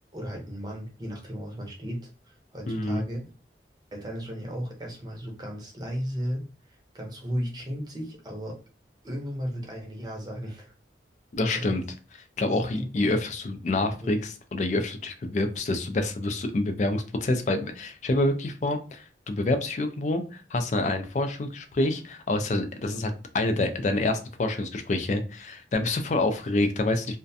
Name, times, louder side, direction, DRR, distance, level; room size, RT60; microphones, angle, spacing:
voice 1, 0.1-3.3 3.9-8.6 9.0-10.7 11.5-11.8 12.5-12.9 14.0-14.1, equal, 25° right, -1 dB, 0.6 m, -35 dB
voice 2, 2.7-3.0 11.3-11.8 12.4-27.2, left 2 dB, 40° left, 7 dB, 0.4 m, -27 dB
2.4 x 2.2 x 2.6 m, 0.36 s
head